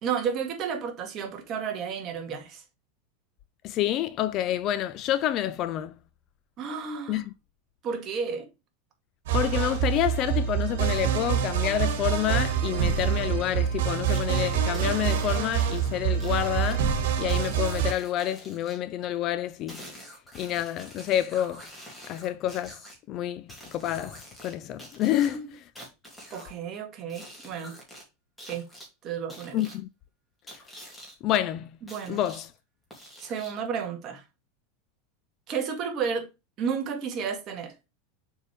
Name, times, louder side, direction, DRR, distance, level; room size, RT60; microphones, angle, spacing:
voice 1, 0.0-2.6 6.6-7.2 7.8-8.5 25.2-25.5 26.3-27.7 28.5-28.6 29.0-29.6 31.8-32.2 33.2-34.2 35.5-36.3 36.6-37.7, right 6 dB, 35° right, 1.7 m, -32 dB
voice 2, 3.6-6.0 7.1-7.3 9.3-16.9 17.2-19.8 20.3-21.6 22.1-22.8 23.1-25.4 29.5-29.9 31.2-31.7 32.1-32.5, left 12 dB, 40° left, 0.5 m, -28 dB
sound 1, 9.3-17.9, right 8 dB, 75° right, 1.9 m, -26 dB
sound 2, 14.0-14.2 14.7-16.8 17.3-18.8 19.7-23.0 23.5-24.5 24.8-26.5 27.1-28.0 28.4-28.9 29.3-29.8 30.5-31.1 31.9-32.4 32.9-33.7, equal, 5° left, 2.6 m, -46 dB
6.7 x 4.6 x 3.2 m
supercardioid pair, 150°, 0 cm